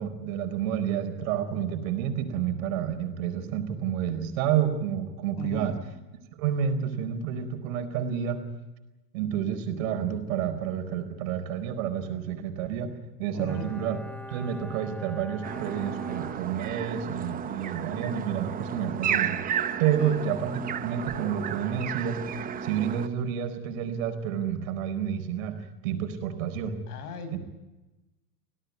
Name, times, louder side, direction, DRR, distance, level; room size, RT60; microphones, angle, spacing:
voice 1, 0.0-5.8 6.4-8.4 9.1-12.9 13.2-14.0 14.3-19.4 19.8-22.2 22.6-25.6 25.8-26.8 27.3-27.4, right 9 dB, 55° right, 7 dB, 4.7 m, -29 dB
voice 2, 5.4-5.8 13.3-13.7 20.0-20.2 26.9-27.4, left 4 dB, 65° left, 10 dB, 6.0 m, -37 dB
Bowed string instrument, 13.5-17.2 17.5-17.6, right 1 dB, 5° left, 1.3 m, -44 dB
sound 1, 15.4-23.1, right 8 dB, 15° right, 1.0 m, -33 dB
27.0 x 17.0 x 9.6 m, 1.1 s
supercardioid pair, 145°, 48 cm